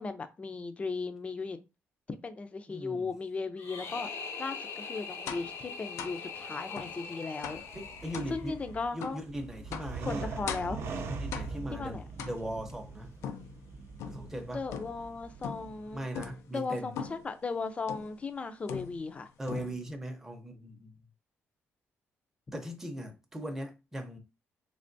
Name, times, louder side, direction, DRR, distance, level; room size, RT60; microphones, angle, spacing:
voice 1, 0.0-1.6 2.2-4.1 4.4-7.6 8.3-9.2 10.1-10.9 11.7-12.0 14.5-16.0 16.5-19.3, left 4 dB, 25° left, 0.5 m, -36 dB
voice 2, 2.7-3.1 7.7-8.5 8.9-10.4 11.1-13.1 14.1-14.6 15.9-16.9 19.4-20.9 22.5-24.2, right 1 dB, 10° right, 0.8 m, -39 dB
sound 1, 3.6-8.7, left 5 dB, 65° left, 0.9 m, -42 dB
sound 2, 5.3-5.6 6.0-6.2 6.8-7.0 7.4-7.7 8.1-8.4 9.0-9.2 9.7-10.0 10.5-10.8 11.3-11.7 12.2-12.7 13.2-14.3 14.7-15.1 15.4-15.8 16.1-16.5 17.0-17.3 17.9-18.2 18.7-19.2 19.5-20.0, left 7 dB, 85° left, 0.5 m, -40 dB
sound 3, 7.5-16.0, right 4 dB, 60° right, 0.6 m, -42 dB
3.5 x 3.3 x 2.6 m
cardioid pair, 120°, 5 cm